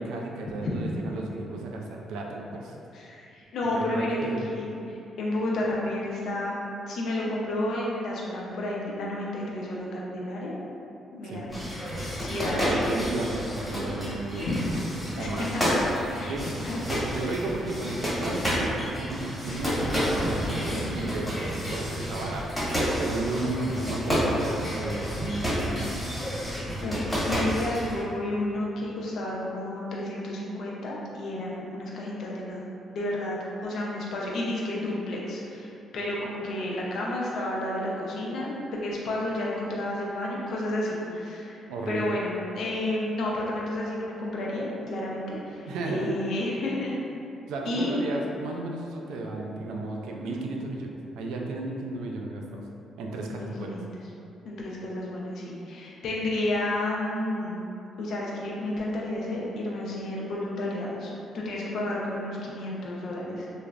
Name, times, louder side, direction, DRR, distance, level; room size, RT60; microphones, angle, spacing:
voice 1, 0.0-2.8 3.6-4.4 11.2-11.4 12.4-14.5 15.2-15.5 16.3-16.5 16.8-19.9 20.2-22.6 23.0-26.0 41.7-42.1 45.7-46.2 47.5-52.6 53.0-53.8, right 2 dB, 90° right, 0 dB, 0.3 m, -33 dB
voice 2, 2.9-6.6 6.9-10.6 11.1-11.4 12.2-13.0 14.4-14.7 15.2-15.8 16.1-16.4 16.6-16.8 17.2-17.3 20.7-20.9 26.8-32.6 32.9-33.4 33.6-38.5 38.8-41.6 41.9-47.0 47.6-48.0 53.3-53.9 54.4-57.6 58.0-63.5, left 1 dB, 70° left, -4 dB, 0.5 m, -31 dB
sound 1, 11.5-28.0, equal, 10° left, 1.2 m, -30 dB
3.1 x 2.0 x 2.4 m, 2.7 s
cardioid pair, 90°, 0 cm